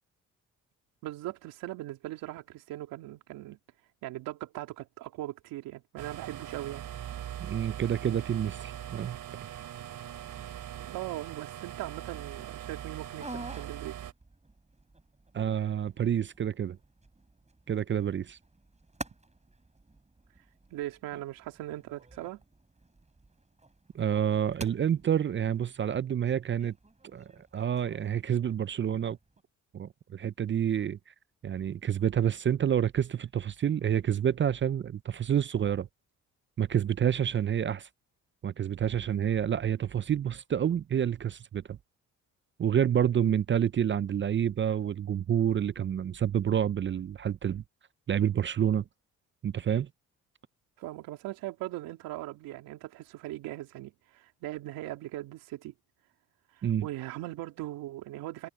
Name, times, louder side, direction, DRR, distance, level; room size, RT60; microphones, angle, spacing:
voice 1, 1.0-3.6 4.0-6.8 10.8-14.0 20.7-22.4 50.8-55.7 56.6-58.5, right 16 dB, 90° right, 3.2 m, -39 dB
sound 1, 6.0-14.1, right 11 dB, 70° right, 4.4 m, -41 dB
voice 2, 7.4-9.2 15.3-16.8 17.7-18.4 23.9-26.7 27.1-29.2 29.7-31.0 31.4-35.9 36.6-37.9 38.4-41.8 42.6-47.6 48.1-48.8 49.4-49.9 56.6-56.9, right 9 dB, 35° right, 0.5 m, -28 dB
sound 2, 12.7-29.4, right 2 dB, 20° right, 6.9 m, -50 dB
supercardioid pair, 65°, 34 cm